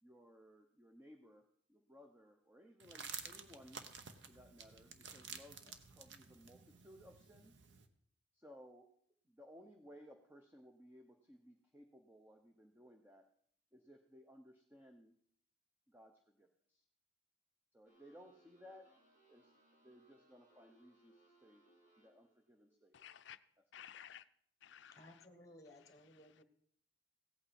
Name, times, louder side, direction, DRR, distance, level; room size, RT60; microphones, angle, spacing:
voice 1, 0.0-3.9 4.3-5.6 5.9-7.6 8.3-8.9 9.2-13.3 13.7-15.2 15.9-16.9 17.7-18.9 19.3-21.6 22.0-23.1, equal, 10° right, 3 dB, 0.6 m, -60 dB
sound 1, 2.8-7.9, right 6 dB, 55° right, 0.8 m, -52 dB
sound 2, 17.8-22.5, right 1 dB, 40° right, 2.5 m, -70 dB
voice 2, 22.9-23.4 23.7-24.3 24.6-25.3 25.8-26.4, left 10 dB, 60° left, 14 dB, 0.4 m, -56 dB
voice 3, 24.9-26.4, left 1 dB, 15° left, 6 dB, 1.2 m, -59 dB
16.0 x 8.5 x 4.2 m, 0.63 s
head